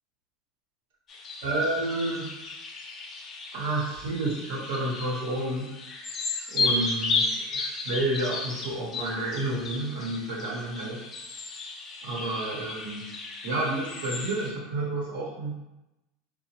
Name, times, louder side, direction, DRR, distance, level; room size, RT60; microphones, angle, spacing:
sound 1, 1.1-14.5, left 3 dB, 35° left, 0.4 m, -34 dB
voice 1, 1.4-2.3 3.5-6.1 6.5-11.1 12.0-13.1 13.4-15.5, right 2 dB, 75° right, -3 dB, 0.8 m, -30 dB
2.9 x 2.0 x 2.8 m, 0.96 s
hypercardioid pair, 95°, 0 cm